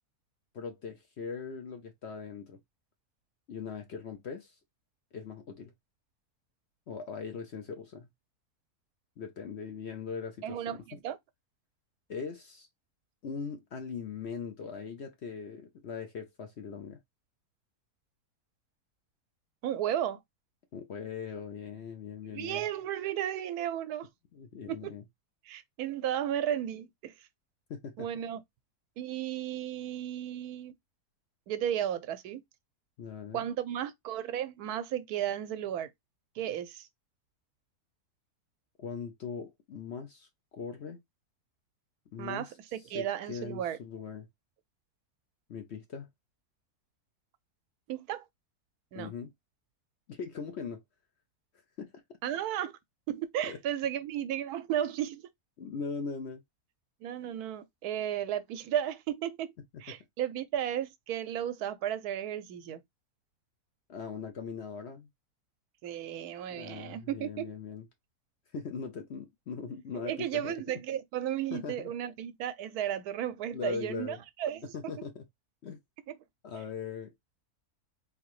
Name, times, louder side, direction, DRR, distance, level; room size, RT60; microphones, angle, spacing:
voice 1, 0.5-2.6 3.5-4.5 5.1-5.7 6.9-8.1 9.2-10.8 12.1-12.7 13.2-17.0 20.7-22.6 24.3-25.0 27.7-28.1 33.0-33.4 38.8-40.3 40.5-41.0 42.1-42.5 42.9-44.3 45.5-46.1 48.9-49.3 50.1-50.8 51.8-51.9 53.4-53.6 55.6-56.4 63.9-65.1 66.5-67.8 68.5-70.6 71.5-71.9 73.5-74.2 74.7-75.2 75.6-75.8 76.4-77.1, left 6 dB, 55° left, 0.8 m, -40 dB
voice 2, 10.4-11.2 19.6-20.2 22.3-24.1 24.7-24.9 25.4-27.1 28.0-28.4 29.0-30.7 31.5-32.4 33.3-35.9 36.4-36.9 42.2-43.8 47.9-48.2 48.9-49.1 52.2-52.7 53.1-55.3 57.0-59.5 59.8-62.8 65.8-67.5 70.0-74.9, right 10 dB, 80° right, 1.1 m, -34 dB
4.0 x 2.7 x 3.0 m
omnidirectional pair, 1.6 m